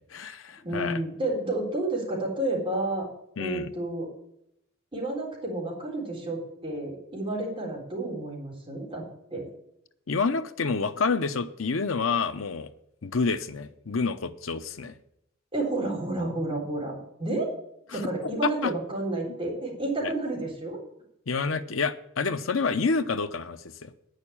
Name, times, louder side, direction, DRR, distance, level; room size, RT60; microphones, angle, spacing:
voice 1, 0.0-1.0 3.4-3.7 10.1-12.7 13.0-15.0 17.9-18.0 18.4-18.7 20.0-20.1 21.3-23.9, left 4 dB, 80° left, 10 dB, 0.8 m, -28 dB
voice 2, 0.6-3.1 3.4-4.1 4.9-9.0 9.3-9.5 15.5-17.5 17.9-20.8, right 2 dB, 25° right, -3 dB, 3.8 m, -30 dB
9.7 x 6.5 x 8.7 m, 0.78 s
head